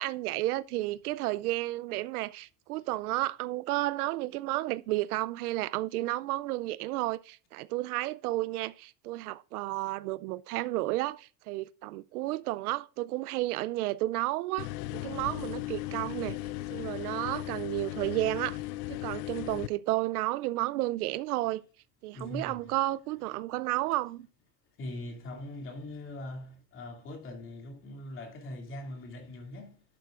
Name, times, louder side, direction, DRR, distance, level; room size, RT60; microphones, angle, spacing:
voice 1, 0.0-16.4 16.7-18.6 18.9-21.6 22.0-24.3, right 17 dB, 65° right, 0.6 m, -32 dB
sound 1, 14.6-19.7, left 16 dB, 65° left, 0.5 m, -37 dB
voice 2, 22.1-22.8 24.8-29.8, left 1 dB, 25° left, 2.5 m, -41 dB
11.5 x 9.1 x 2.5 m
supercardioid pair, 150°, 49 cm